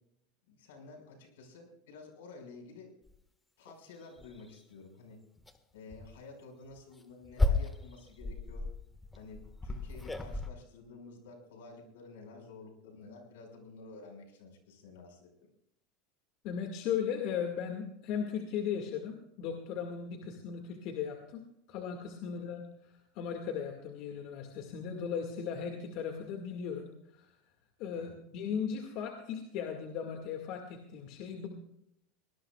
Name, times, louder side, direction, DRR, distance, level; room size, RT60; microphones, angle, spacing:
voice 1, 0.5-2.9 3.6-5.2 5.7-8.7 9.1-15.3 20.2-20.3 22.4-22.5 27.9-28.1, left 3 dB, 85° left, 2 dB, 5.5 m, -51 dB
sound 1, 3.1-3.2 3.7-3.8 4.2-4.6 5.4-5.6 5.9-6.1 6.7-10.5, left 2 dB, 10° left, 1.6 m, -34 dB
voice 2, 16.4-27.3 27.8-31.5, left 7 dB, 60° left, 3 dB, 2.0 m, -37 dB
22.0 x 19.0 x 2.4 m, 0.77 s
supercardioid pair, 115°, 0 cm